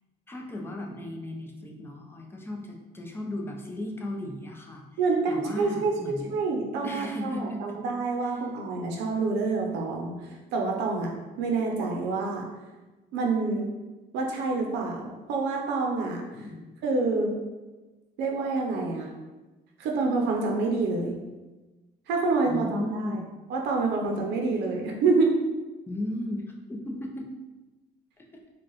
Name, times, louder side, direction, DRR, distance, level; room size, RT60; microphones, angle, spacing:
voice 1, 0.3-4.8 5.3-6.3 6.8-7.8 8.2-8.4 16.3-16.7 22.5-23.2 25.9-27.3 28.2-28.4, left 1 dB, 15° left, 0 dB, 0.6 m, -36 dB
voice 2, 5.0-12.5 13.1-13.7 14.1-16.2 16.8-17.3 18.2-19.1 19.8-21.2 22.1-23.2 23.5-25.3, right 3 dB, 90° right, 1 dB, 0.6 m, -27 dB
4.5 x 2.3 x 3.0 m, 1.2 s
cardioid pair, 110°, 17 cm